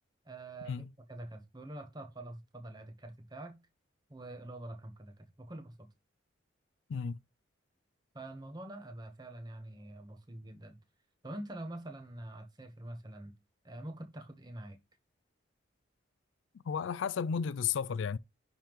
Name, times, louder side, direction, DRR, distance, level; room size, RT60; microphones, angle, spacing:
voice 1, 0.2-3.6 4.1-5.9 8.1-10.8 11.2-13.3 13.6-14.8, right 1 dB, 20° right, 1.1 m, -45 dB
voice 2, 16.6-18.2, left 6 dB, 75° left, 0.4 m, -33 dB
10.0 x 3.6 x 3.0 m
head